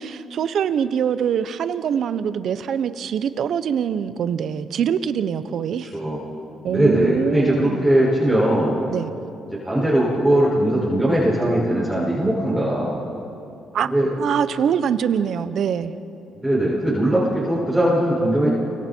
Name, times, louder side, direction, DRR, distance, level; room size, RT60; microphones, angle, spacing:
voice 1, 0.0-5.9 6.6-7.8 8.9-9.1 13.7-13.9 14.2-16.0, right 8 dB, 65° right, 12 dB, 0.9 m, -24 dB
voice 2, 6.7-8.8 9.5-13.0 13.9-14.1 16.3-18.5, right 1 dB, 10° right, -8 dB, 6.3 m, -20 dB
29.0 x 24.0 x 4.6 m, 2.7 s
cardioid pair, 90°, 0 cm